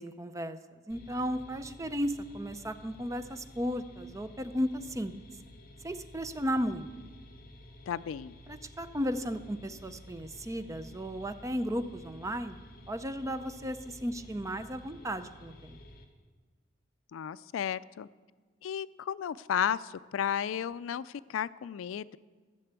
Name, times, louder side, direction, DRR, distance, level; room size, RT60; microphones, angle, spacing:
voice 1, 0.0-5.1 5.8-6.9 8.5-12.6 12.9-15.8, equal, 15° right, 10 dB, 0.6 m, -35 dB
sound 1, 0.9-16.0, left 1 dB, 50° left, 1.7 m, -52 dB
voice 2, 7.9-8.3 17.1-18.1 18.6-22.2, left 8 dB, 75° left, 18 dB, 0.3 m, -33 dB
14.5 x 6.8 x 8.1 m, 1.5 s
head